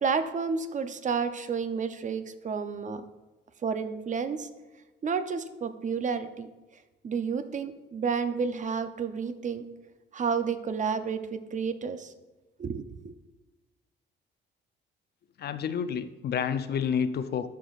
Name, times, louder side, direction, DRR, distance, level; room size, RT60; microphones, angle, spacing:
voice 1, 0.0-3.0 3.6-4.5 5.0-6.5 7.0-9.6 10.1-12.1 12.6-13.1, right 5 dB, 40° right, 10 dB, 0.5 m, -30 dB
voice 2, 15.4-17.5, left 7 dB, 55° left, 11 dB, 0.5 m, -29 dB
11.5 x 5.0 x 2.4 m, 1.1 s
cardioid pair, 90°, 20 cm